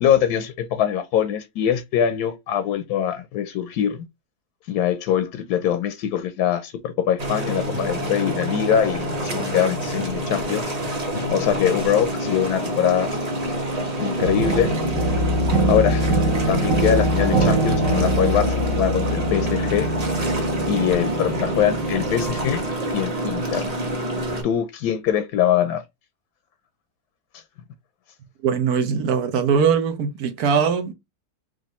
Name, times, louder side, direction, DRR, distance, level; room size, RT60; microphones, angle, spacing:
voice 1, 0.0-4.1 4.7-10.6 11.3-13.1 14.0-14.7 15.7-16.2 16.5-19.9 20.7-22.6 22.9-23.7 24.4-25.8, left 9 dB, 85° left, 1.2 m, -23 dB
sound 1, 7.2-24.4, right 1 dB, 30° right, 0.9 m, -27 dB
sound 2, 7.4-16.4, left 6 dB, 60° left, 0.8 m, -37 dB
sound 3, 14.2-22.7, right 1 dB, 60° right, 1.7 m, -23 dB
voice 2, 28.4-30.9, right 6 dB, 80° right, 1.3 m, -21 dB
5.0 x 2.6 x 3.0 m
omnidirectional pair, 1.6 m